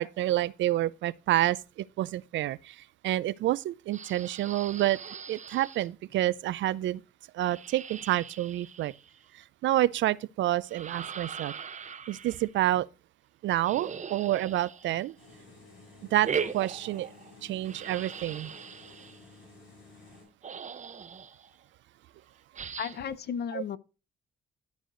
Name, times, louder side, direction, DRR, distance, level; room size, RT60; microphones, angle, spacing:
voice 1, 0.0-5.0 5.3-7.0 7.3-8.9 9.3-11.5 12.1-12.9 13.4-15.2 16.1-17.1 17.4-18.5 23.5-23.6, right 14 dB, 70° right, 0.4 m, -28 dB
sound 1, 3.9-5.9 7.4-9.3 10.7-12.5 13.6-15.3 16.2-17.3 17.6-19.2 20.1-20.2 20.4-21.5 22.5-23.1, right 7 dB, 40° right, 0.8 m, -40 dB
sound 2, 15.2-20.2, left 4 dB, 75° left, 5.6 m, -53 dB
voice 2, 22.8-23.8, left 7 dB, 55° left, 0.6 m, -34 dB
11.5 x 4.8 x 3.7 m
cardioid pair, 90°, 20 cm